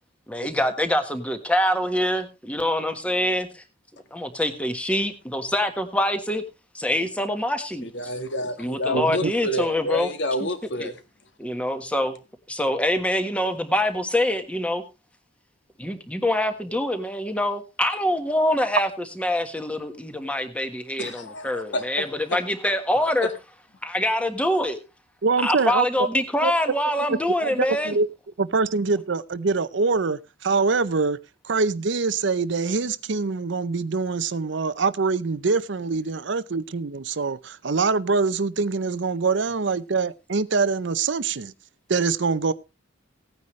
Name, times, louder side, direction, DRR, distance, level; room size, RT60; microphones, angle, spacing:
voice 1, 0.3-3.6 4.1-6.4 6.7-7.9 8.6-10.1 10.4-10.5 10.8-10.9 11.4-12.2 12.5-14.8 15.8-18.9 19.2-23.3 23.8-24.8 25.4-28.0, left 1 dB, 5° left, 1.4 m, -25 dB
voice 2, 7.8-11.0 21.0-21.8, left 1 dB, 60° left, 1.7 m, -29 dB
voice 3, 8.9-9.3 25.2-26.1 26.4-26.5 27.1-28.1 28.4-31.2 31.4-41.5 41.9-42.5, right 4 dB, 65° right, 0.6 m, -24 dB
17.0 x 9.5 x 3.2 m
head